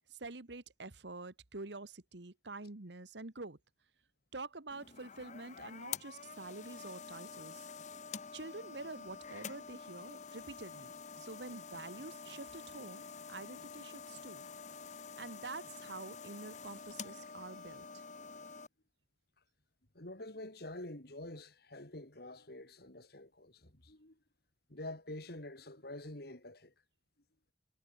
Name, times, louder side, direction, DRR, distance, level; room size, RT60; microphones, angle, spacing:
voice 1, 0.1-3.6 4.3-7.7 8.3-14.5 15.2-18.0, right 3 dB, 70° right, 1.6 m, -47 dB
sound 1, 4.7-18.7, left 6 dB, 40° left, 1.1 m, -48 dB
voice 2, 19.9-24.2 24.7-26.7, left 1 dB, 60° left, 3.9 m, -47 dB
head